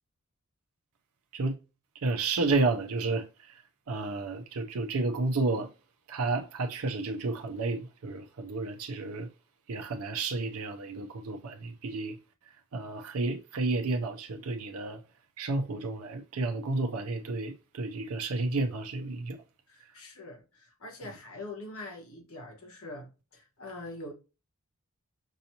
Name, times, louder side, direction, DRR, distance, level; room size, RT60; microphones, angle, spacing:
voice 1, 1.9-3.6 3.9-5.7 6.1-9.3 9.7-12.2 12.7-15.0 15.4-19.4, right 3 dB, 80° right, 0.5 m, -31 dB
voice 2, 19.7-24.1, left 2 dB, 70° left, 1.3 m, -44 dB
5.4 x 2.8 x 2.8 m
head